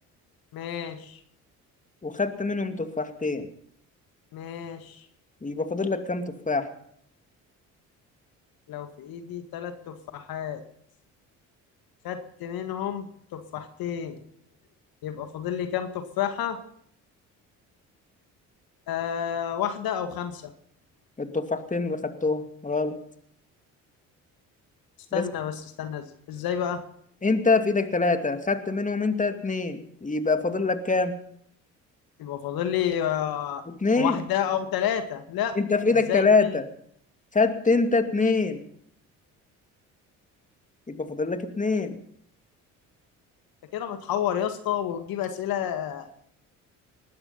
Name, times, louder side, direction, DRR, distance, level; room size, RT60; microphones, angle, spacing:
voice 1, 0.5-1.2 4.3-5.1 8.7-10.6 12.0-13.1 13.3-14.2 15.0-16.6 18.9-20.5 25.1-26.8 32.2-33.6 34.0-35.6 36.1-36.3 43.7-46.1, left 10 dB, 70° left, 8 dB, 2.0 m, -30 dB
voice 2, 2.0-3.5 5.4-6.7 21.2-23.0 25.1-25.3 27.2-31.2 33.7-34.2 35.6-36.7 37.3-38.6 40.9-42.0, left 3 dB, 20° left, 8 dB, 2.5 m, -25 dB
20.0 x 12.5 x 5.6 m, 0.67 s
supercardioid pair, 60°, 37 cm